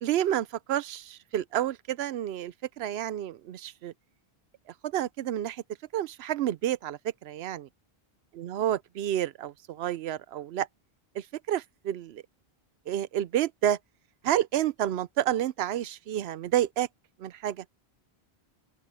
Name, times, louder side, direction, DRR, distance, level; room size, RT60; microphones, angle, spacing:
voice 1, 0.0-3.9 4.9-5.6 5.9-7.7 8.4-10.7 11.2-12.2 12.9-13.8 14.2-16.9 17.2-17.6, right 11 dB, 80° right, 0.8 m, -30 dB
open air
omnidirectional pair, 1.1 m